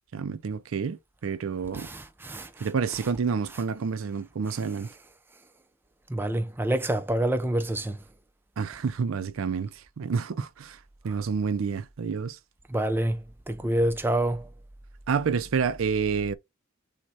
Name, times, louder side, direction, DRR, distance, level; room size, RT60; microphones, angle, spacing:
voice 1, 0.1-1.9 2.6-4.9 8.6-10.8 11.0-12.4 15.1-16.3, right 5 dB, 80° right, 0.5 m, -29 dB
voice 2, 1.7-3.1 4.5-4.6 6.1-8.0 11.1-11.2 12.7-14.5, right 1 dB, 10° right, 0.4 m, -28 dB
6.1 x 2.2 x 4.0 m
head